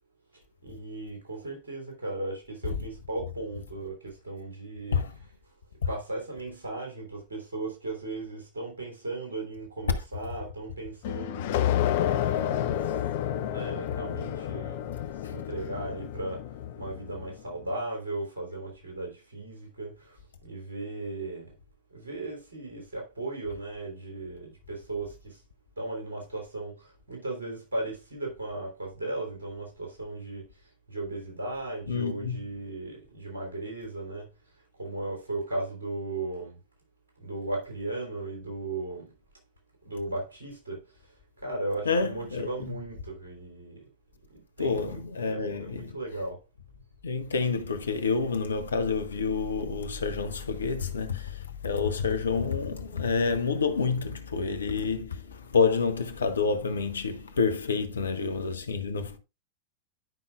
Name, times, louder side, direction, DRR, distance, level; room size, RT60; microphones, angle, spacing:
voice 1, 0.6-5.0 5.9-11.8 12.3-12.9 13.3-14.8 15.3-16.5 16.8-20.2 20.4-21.5 21.9-25.4 25.8-30.5 30.9-34.3 34.8-36.6 37.2-39.1 39.8-40.8 41.4-43.8 44.3-46.4, right 2 dB, 70° right, 3.2 m, -36 dB
Piano falling down stairs, 11.0-17.4, left 11 dB, 50° left, 0.5 m, -30 dB
voice 2, 31.9-32.4 41.8-42.8 44.6-46.0 47.0-59.2, left 5 dB, 70° left, 0.9 m, -28 dB
11.0 x 5.5 x 2.4 m
figure-of-eight pair, 90°, 0 cm